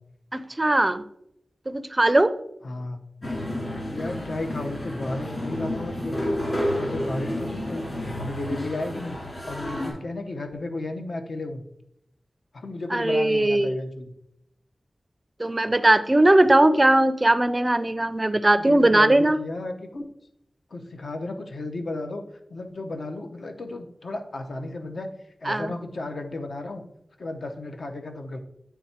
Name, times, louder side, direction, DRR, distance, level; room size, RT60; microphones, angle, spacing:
voice 1, 0.3-1.0 1.7-2.3 12.9-13.8 15.4-19.4 25.5-25.7, right 1 dB, 25° right, 12 dB, 0.4 m, -19 dB
voice 2, 2.6-3.0 3.7-6.2 6.6-7.8 8.2-9.2 9.4-11.6 12.5-14.1 18.6-20.0 20.7-22.2 22.5-25.1 25.4-26.8 27.2-28.4, left 2 dB, 70° left, 5 dB, 0.8 m, -33 dB
sound 1, 3.2-9.9, left 1 dB, 35° left, 2.3 m, -30 dB
8.5 x 3.4 x 4.3 m, 0.77 s
wide cardioid pair, 105°, 0 cm